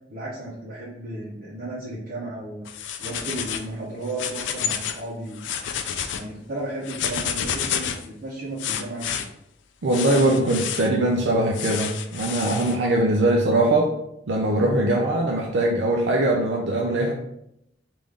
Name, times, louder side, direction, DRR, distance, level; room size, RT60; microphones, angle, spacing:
voice 1, 0.1-5.5 6.1-9.3, right 1 dB, 50° right, -7 dB, 0.8 m, -34 dB
sound 1, 2.7-3.7 4.1-5.0 5.3-6.2 6.8-8.1 8.6-9.3 9.9-10.9 11.5-12.8, left 8 dB, 85° left, 0.4 m, -29 dB
voice 2, 9.8-13.9 14.3-17.1, right 1 dB, 85° right, -1 dB, 0.5 m, -21 dB
3.6 x 2.6 x 3.4 m, 0.78 s
head